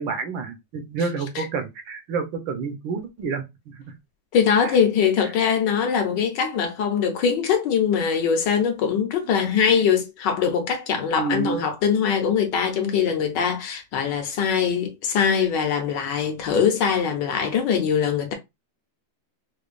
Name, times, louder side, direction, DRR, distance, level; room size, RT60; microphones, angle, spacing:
voice 1, 0.0-3.8 4.6-4.7 11.2-11.6, right 5 dB, 80° right, 1.5 m, -29 dB
voice 2, 4.3-18.3, left 7 dB, 70° left, 1.4 m, -22 dB
5.0 x 2.3 x 2.4 m
omnidirectional pair, 2.1 m